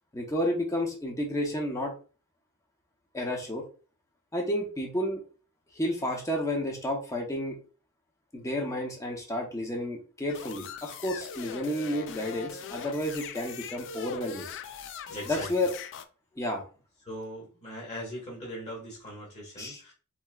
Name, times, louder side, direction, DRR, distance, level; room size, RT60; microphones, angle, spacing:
voice 1, 0.1-1.9 3.1-3.6 4.3-5.2 5.7-7.6 8.3-14.5 15.3-15.7 16.4-16.6 19.6-19.8, left 1 dB, 15° left, 0 dB, 0.8 m, -31 dB
sound 1, 10.3-16.1, left 7 dB, 60° left, 0.4 m, -41 dB
voice 2, 15.1-15.7 16.3-16.4 17.0-19.9, equal, 30° left, -5 dB, 1.6 m, -40 dB
4.5 x 2.8 x 2.3 m, 0.36 s
head